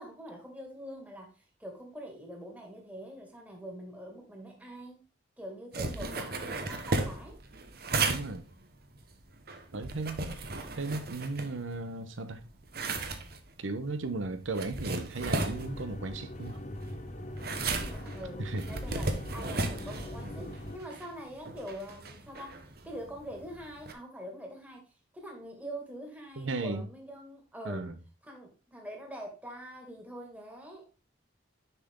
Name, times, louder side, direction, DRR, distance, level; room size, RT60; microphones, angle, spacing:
voice 1, 0.0-5.0 5.4-7.4 17.6-27.9 28.2-30.9, equal, 10° right, 2.0 m, -44 dB
sound 1, 5.7-12.0 12.3-23.9, right 3 dB, 50° right, 1.1 m, -36 dB
voice 2, 8.1-8.4 9.7-10.2 10.7-12.4 13.6-16.6 18.4-18.7 26.4-26.9 27.6-28.0, right 3 dB, 80° right, 0.8 m, -35 dB
sound 2, 15.2-20.8, left 1 dB, 40° left, 0.8 m, -42 dB
6.8 x 5.9 x 3.6 m
head